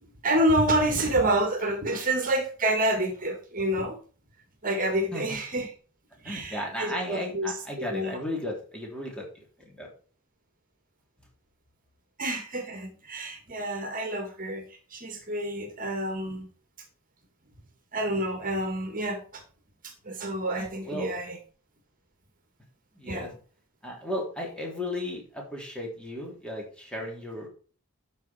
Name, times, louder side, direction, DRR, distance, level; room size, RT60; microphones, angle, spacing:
voice 1, 0.0-4.0 4.6-5.7 6.2-7.5 7.9-8.2 12.2-14.6 14.9-16.5 17.9-19.4 19.8-21.4 23.1-23.3, right 1 dB, 40° right, 5 dB, 2.0 m, -28 dB
voice 2, 6.3-9.9 20.6-21.1 23.0-23.3 23.8-27.5, left 1 dB, 5° left, -1 dB, 3.3 m, -35 dB
12.0 x 5.8 x 4.4 m, 0.39 s
head